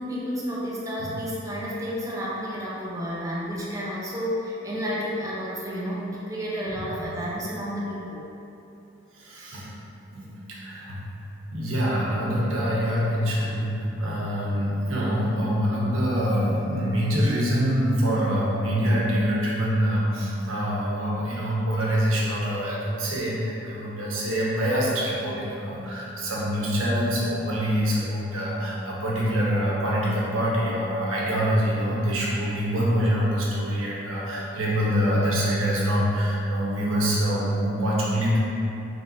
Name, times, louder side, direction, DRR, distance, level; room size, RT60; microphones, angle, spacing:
voice 1, 0.0-8.2, equal, 15° right, -6 dB, 0.5 m, -31 dB
voice 2, 6.7-7.1 9.1-9.7 10.1-11.0 11.5-38.4, equal, 90° right, -5 dB, 0.9 m, -25 dB
4.4 x 3.1 x 2.8 m, 2.8 s
head